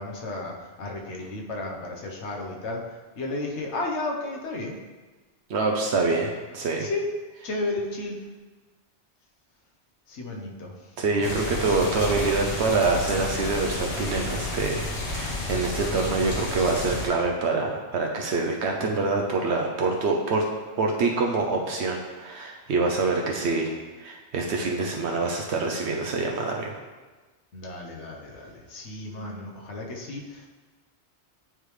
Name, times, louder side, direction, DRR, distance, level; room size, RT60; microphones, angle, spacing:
voice 1, 0.0-4.8 6.8-7.1 7.4-8.3 10.1-10.9 11.4-11.8 27.5-30.5, left 2 dB, 85° left, 0 dB, 1.2 m, -33 dB
voice 2, 5.5-6.9 11.0-20.4 20.8-26.8, right 3 dB, 75° right, 1 dB, 0.9 m, -26 dB
sound 1, 11.2-17.1, left 2 dB, 60° left, 1.2 m, -31 dB
9.2 x 3.4 x 3.2 m, 1.3 s
omnidirectional pair, 1.2 m